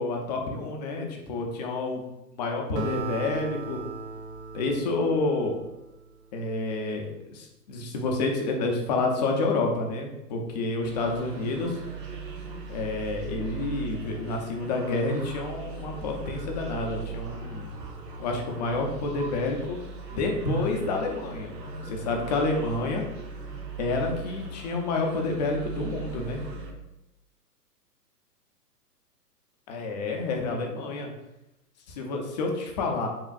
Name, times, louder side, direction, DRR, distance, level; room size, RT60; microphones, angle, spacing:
voice 1, 0.0-2.0 2.4-3.8 4.5-5.6 6.3-11.8 12.7-17.7 18.2-19.8 20.1-21.5 21.8-23.0 23.8-26.4 29.7-31.1 31.9-33.1, left 3 dB, 25° left, 2 dB, 0.6 m, -29 dB
Acoustic guitar, 2.8-6.3, right 5 dB, 45° right, 0.6 m, -38 dB
sound 1, 10.8-26.7, right 4 dB, 85° right, 1.2 m, -39 dB
7.2 x 2.4 x 2.4 m, 0.92 s
hypercardioid pair, 130°, 48 cm